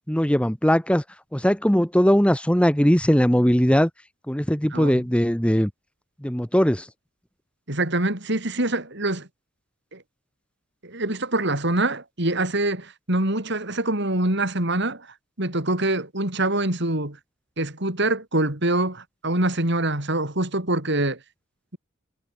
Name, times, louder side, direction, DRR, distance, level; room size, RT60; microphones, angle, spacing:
voice 1, 0.1-1.0 1.3-3.9 4.3-5.7 6.2-6.9, equal, 5° left, 1.3 m, -20 dB
voice 2, 4.7-5.0 7.7-9.3 9.9-10.0 10.8-17.2 17.6-21.2, right 2 dB, 60° right, 4.9 m, -25 dB
head